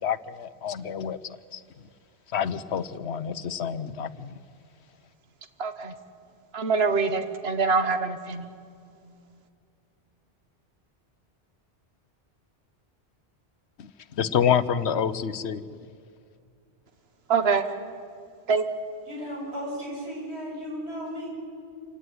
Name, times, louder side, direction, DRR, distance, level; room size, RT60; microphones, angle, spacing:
voice 1, 0.0-1.2 1.5-1.6 2.3-4.3 13.8-13.9 14.2-15.6, left 8 dB, 85° left, 15 dB, 1.1 m, -27 dB
voice 2, 5.6-5.9 6.5-8.5 17.3-17.6 18.5-18.6, right 4 dB, 70° right, 10 dB, 1.6 m, -24 dB
voice 3, 19.1-21.3, equal, 90° right, -4 dB, 8.4 m, -35 dB
27.5 x 17.0 x 9.8 m, 2.4 s
omnidirectional pair, 1.1 m